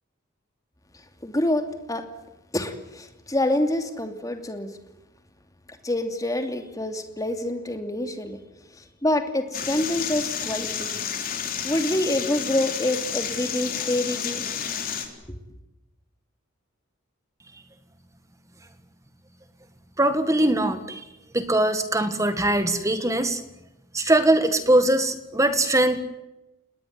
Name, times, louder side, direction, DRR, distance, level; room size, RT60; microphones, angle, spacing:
voice 1, 1.2-2.1 2.5-4.7 5.8-8.4 8.8-10.9 11.6-14.4, left 1 dB, 20° left, 6 dB, 2.8 m, -26 dB
sound 1, 9.5-15.1, left 7 dB, 45° left, 4.0 m, -30 dB
voice 2, 20.0-21.0 21.3-23.4 23.9-26.0, right 1 dB, 15° right, 9 dB, 1.9 m, -21 dB
28.5 x 20.0 x 9.6 m, 0.95 s
head